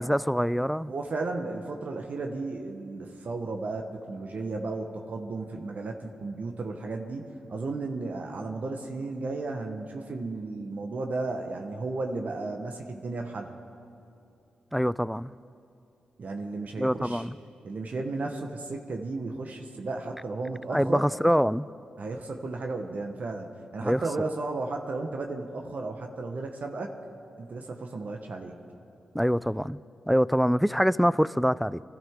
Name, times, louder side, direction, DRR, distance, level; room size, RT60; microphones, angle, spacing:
voice 1, 0.0-0.9 14.7-15.3 16.8-17.3 20.7-21.7 23.8-24.0 29.1-31.8, equal, ahead, 19 dB, 0.3 m, -25 dB
voice 2, 0.9-13.6 16.2-17.3 17.6-21.1 22.0-26.9 27.4-28.6, right 3 dB, 60° right, 3 dB, 1.2 m, -34 dB
24.5 x 12.5 x 3.7 m, 2.6 s
supercardioid pair, 45°, 3 cm